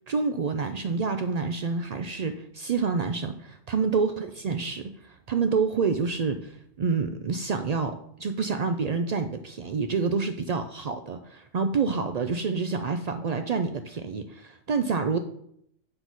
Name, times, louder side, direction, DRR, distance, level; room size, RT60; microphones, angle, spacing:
voice 1, 0.1-15.2, right 5 dB, 85° right, 7 dB, 0.3 m, -28 dB
7.7 x 4.0 x 6.1 m, 0.71 s
omnidirectional pair, 1.3 m